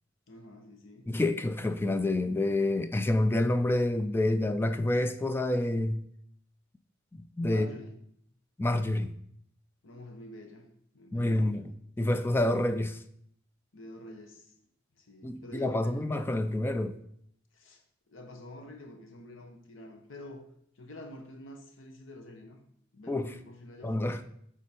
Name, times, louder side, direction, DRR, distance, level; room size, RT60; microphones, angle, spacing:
voice 1, 0.3-1.1 7.5-8.0 9.8-10.7 10.9-11.8 13.7-14.5 15.0-16.1 17.5-20.5 20.7-22.6 22.9-24.1, left 1 dB, 85° left, 1.0 m, -48 dB
voice 2, 1.1-6.0 7.1-7.7 8.6-9.1 11.1-11.7 12.0-13.0 15.2-17.0 23.1-23.3 23.8-24.4, left 1 dB, 10° left, 0.3 m, -28 dB
8.5 x 3.7 x 4.3 m
head